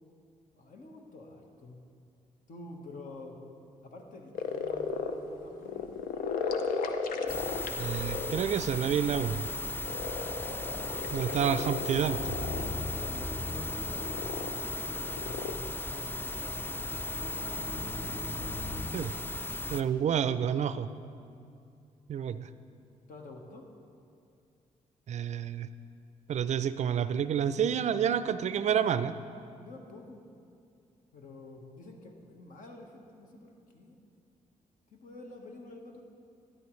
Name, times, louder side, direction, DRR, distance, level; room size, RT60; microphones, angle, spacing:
voice 1, 0.5-1.8 2.5-3.4 3.8-5.9 10.5-12.1 12.9-17.7 23.1-23.7 29.6-30.2 31.1-34.0 34.9-36.0, left 2 dB, 70° left, 2 dB, 1.3 m, -49 dB
sound 1, 4.3-15.7, left 5 dB, 90° left, 0.6 m, -36 dB
sound 2, 7.3-19.8, left 2 dB, 15° left, 0.4 m, -36 dB
voice 2, 7.8-9.4 11.1-12.2 18.9-19.1 19.7-20.9 22.1-22.5 25.1-25.7 26.3-29.2, right 8 dB, 55° right, 14 dB, 0.4 m, -29 dB
sound 3, 12.2-18.8, left 3 dB, 45° left, 1.3 m, -42 dB
12.5 x 9.6 x 3.2 m, 2.5 s
cardioid pair, 70°, 14 cm